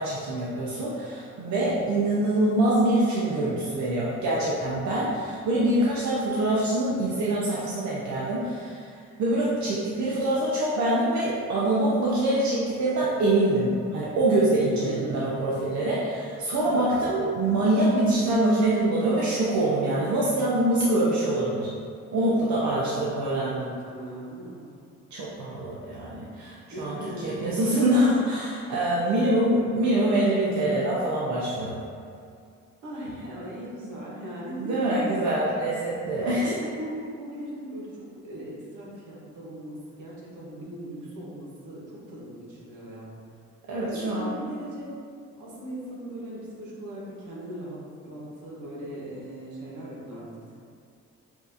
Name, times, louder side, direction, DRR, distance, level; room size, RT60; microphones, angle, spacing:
voice 1, 0.0-21.7 22.1-23.7 25.1-31.8 34.7-36.5 43.7-44.4, right 1 dB, 65° right, -6 dB, 0.8 m, -25 dB
voice 2, 1.7-2.1 14.6-15.3 16.6-17.3 22.5-24.7 26.7-28.0 29.0-29.5 32.8-35.2 36.2-43.1 43.9-45.0 45.4-50.5, right 1 dB, 85° right, -5 dB, 1.3 m, -39 dB
7.1 x 2.6 x 2.7 m, 2.3 s
cardioid pair, 90°, 30 cm